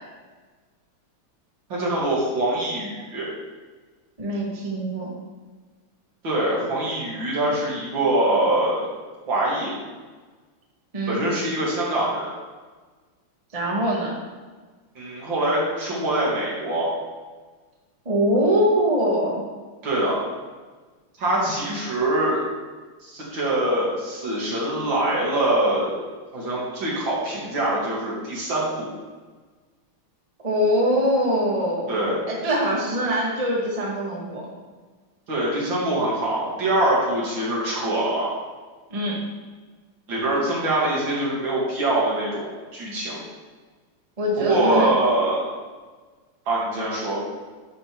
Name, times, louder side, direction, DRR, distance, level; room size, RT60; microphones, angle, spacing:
voice 1, 1.7-3.3 6.2-8.9 9.3-9.7 11.1-12.3 15.0-16.9 19.8-20.2 21.2-22.4 23.0-26.0 26.3-28.9 31.9-32.2 35.3-38.3 40.1-43.2 44.4-45.5 46.5-47.2, right 1 dB, 65° right, -5 dB, 2.7 m, -24 dB
voice 2, 4.2-5.1 10.9-11.2 13.5-14.1 18.0-19.4 30.4-31.9 32.3-34.5 38.9-39.2 44.2-44.9, equal, 20° right, -3 dB, 1.2 m, -23 dB
11.0 x 3.9 x 4.5 m, 1.4 s
omnidirectional pair, 2.3 m